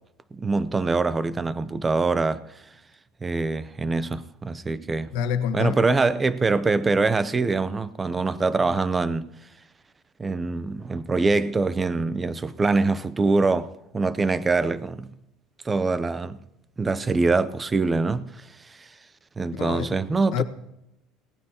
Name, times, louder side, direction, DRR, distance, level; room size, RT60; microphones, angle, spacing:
voice 1, 0.3-2.6 3.2-5.1 5.5-9.3 10.2-15.1 15.6-16.4 16.8-18.9 19.4-20.4, right 3 dB, 15° right, 0.5 m, -24 dB
voice 2, 5.1-6.0 19.5-20.0 20.3-20.4, left 8 dB, 75° left, 1.4 m, -27 dB
26.0 x 17.5 x 2.9 m
cardioid pair, 165°, 0 cm